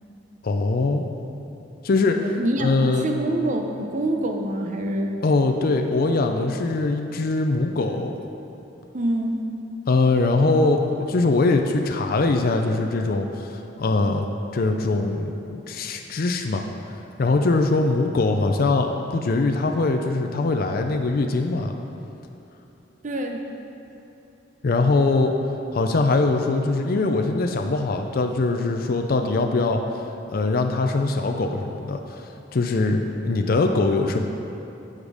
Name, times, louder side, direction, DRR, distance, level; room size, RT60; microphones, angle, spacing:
voice 1, 0.4-1.0 1.8-2.2 2.6-3.1 5.2-8.1 9.9-14.3 14.5-16.6 17.2-21.7 24.6-25.3 25.7-29.8 30.3-34.2, left 3 dB, 50° left, 4 dB, 0.4 m, -22 dB
voice 2, 2.2-5.1 8.9-9.4 23.0-23.4, right 1 dB, 40° right, 3 dB, 0.6 m, -26 dB
8.5 x 5.1 x 4.8 m, 3.0 s
head